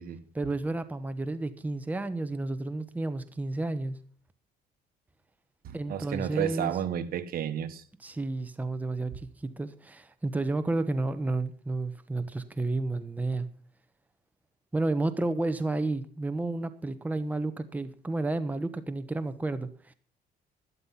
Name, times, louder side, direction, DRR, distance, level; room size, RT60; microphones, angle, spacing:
voice 1, 0.3-4.0 5.7-6.7 8.0-13.5 14.7-19.9, right 2 dB, 10° right, 1.1 m, -31 dB
voice 2, 5.6-7.8, right 9 dB, 60° right, 1.5 m, -32 dB
12.0 x 12.0 x 5.8 m
cardioid pair, 110°, 17 cm